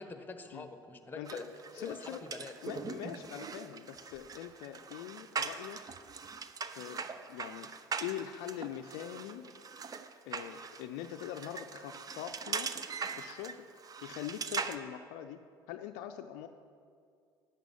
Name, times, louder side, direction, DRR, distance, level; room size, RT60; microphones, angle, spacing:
voice 1, 0.0-1.4 1.8-2.5, left 3 dB, 15° left, 8 dB, 1.2 m, -44 dB
voice 2, 1.2-1.5 1.7-2.2 2.6-5.8 6.8-7.7 8.0-9.5 10.3-12.7 13.1-13.7 14.0-15.4 15.7-16.5, left 11 dB, 65° left, 7 dB, 0.5 m, -43 dB
sound 1, 1.3-14.8, right 5 dB, 30° right, 0.7 m, -41 dB
11.0 x 7.5 x 7.3 m, 2.3 s
hypercardioid pair, 65°, 12 cm